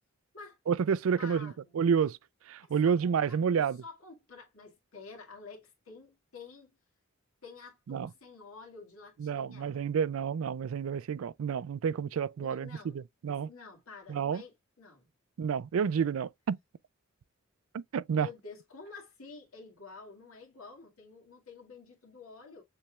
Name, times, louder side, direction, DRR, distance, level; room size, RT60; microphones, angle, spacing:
voice 1, 0.7-2.2 2.5-3.8 7.9-8.1 9.2-13.5 14.1-14.4 15.4-16.6 17.7-18.3, right 7 dB, 75° right, 0.4 m, -30 dB
voice 2, 1.2-1.8 2.6-3.4 3.8-6.7 7.4-9.8 12.4-13.0 13.4-15.1 18.1-22.6, left 4 dB, 90° left, 2.0 m, -50 dB
7.0 x 3.2 x 2.3 m
head